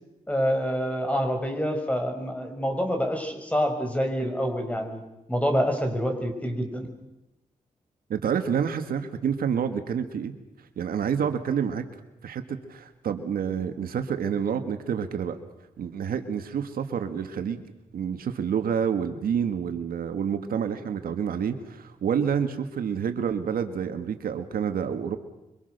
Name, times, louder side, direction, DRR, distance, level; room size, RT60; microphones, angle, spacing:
voice 1, 0.3-5.0 5.3-6.9, equal, 10° left, 4 dB, 6.3 m, -27 dB
voice 2, 8.1-10.3 10.8-11.8 12.2-15.4 15.8-17.6 17.9-25.2, right 7 dB, 90° right, 8 dB, 1.8 m, -28 dB
26.0 x 24.5 x 6.7 m, 0.94 s
cardioid pair, 75°, 15 cm